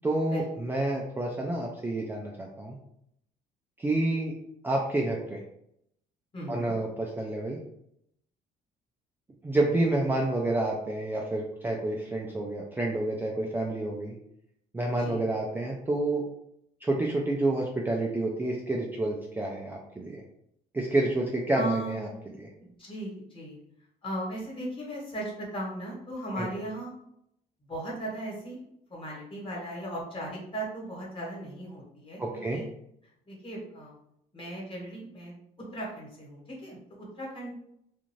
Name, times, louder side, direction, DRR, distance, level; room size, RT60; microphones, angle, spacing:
voice 1, 0.0-2.8 3.8-4.3 4.6-5.4 6.5-7.6 9.4-14.1 14.7-16.2 16.8-20.2 20.7-22.1 22.4-22.5 26.4-26.5 32.2-32.6, right 2 dB, 10° right, -2 dB, 0.4 m, -29 dB
voice 2, 6.3-6.8 15.0-15.2 21.5-22.0 22.6-23.6 24.0-26.9 27.6-28.6 28.9-32.6 33.3-33.9 34.3-35.3 35.7-37.5, right 1 dB, 30° left, -4 dB, 1.3 m, -37 dB
2.5 x 2.5 x 3.0 m, 0.76 s
cardioid pair, 110°, 17 cm